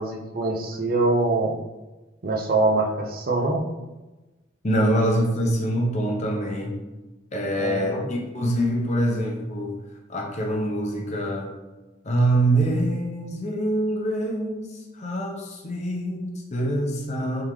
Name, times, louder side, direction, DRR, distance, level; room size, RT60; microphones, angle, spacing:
voice 1, 0.0-1.5 2.2-3.6 7.6-8.0, right 2 dB, 50° right, 0 dB, 0.5 m, -24 dB
voice 2, 4.6-6.7 7.3-9.8 10.1-11.5 12.0-14.7 14.9-17.4, right 1 dB, 35° left, 0 dB, 0.6 m, -25 dB
3.6 x 3.5 x 3.0 m, 1.1 s
head